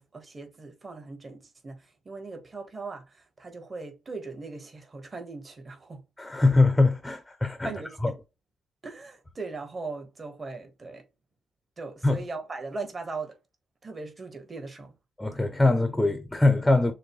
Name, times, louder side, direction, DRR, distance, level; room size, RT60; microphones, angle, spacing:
voice 1, 0.0-6.0 7.6-8.2 8.8-11.0 11.8-13.4 13.8-14.9, right 3 dB, 30° right, 1.4 m, -39 dB
voice 2, 6.2-7.7 8.0-8.1 12.0-12.2 15.2-16.9, left 2 dB, 10° left, 0.7 m, -22 dB
6.5 x 2.2 x 3.1 m
cardioid pair, 90°, 0 cm